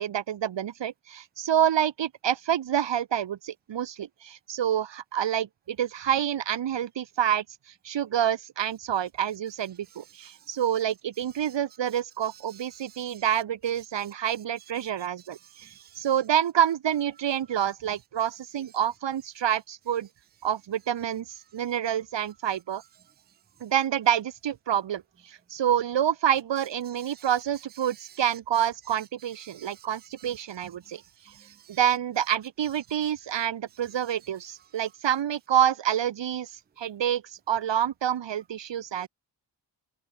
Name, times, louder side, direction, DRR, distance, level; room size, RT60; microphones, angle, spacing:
voice 1, 0.0-7.4 7.8-15.4 16.0-20.1 20.4-21.3 21.5-22.8 23.6-25.0 25.3-31.0 31.7-36.5 36.8-37.2 37.5-39.1, right 10 dB, 90° right, 2.1 m, -27 dB
voice 2, 12.2-13.2 14.8-14.9 15.4-16.1 27.0-27.3 27.8-28.0 29.4-29.9 30.2-30.3 30.9-31.0 31.3-31.8, right 10 dB, 25° right, 0.5 m, -52 dB
wide cardioid pair, 105°, 43 cm